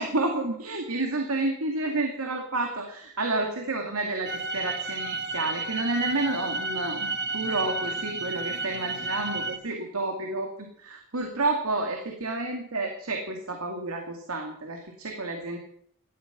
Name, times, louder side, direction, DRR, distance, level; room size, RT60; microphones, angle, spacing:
voice 1, 0.0-7.1 7.3-15.6, right 2 dB, 85° right, 3 dB, 2.3 m, -30 dB
sound 1, 4.3-9.6, right 3 dB, 50° right, 1.5 m, -32 dB
17.5 x 12.5 x 6.1 m, 0.67 s
head